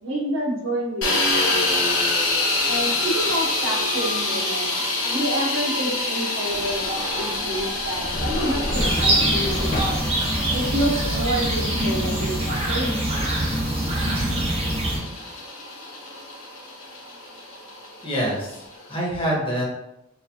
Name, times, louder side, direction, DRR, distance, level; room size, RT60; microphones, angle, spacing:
voice 1, 0.0-1.6 2.6-4.7 5.0-10.0 10.5-12.9, right 1 dB, 75° right, 0 dB, 0.9 m, -28 dB
sound 1, 1.0-18.9, left 2 dB, 70° left, 1.0 m, -27 dB
sound 2, 6.5-12.0, left 1 dB, 45° left, 0.6 m, -32 dB
sound 3, 8.7-15.0, right 1 dB, 30° right, 0.8 m, -24 dB
voice 2, 18.0-19.6, equal, 25° left, -5 dB, 1.2 m, -26 dB
4.4 x 2.5 x 2.8 m, 0.84 s
head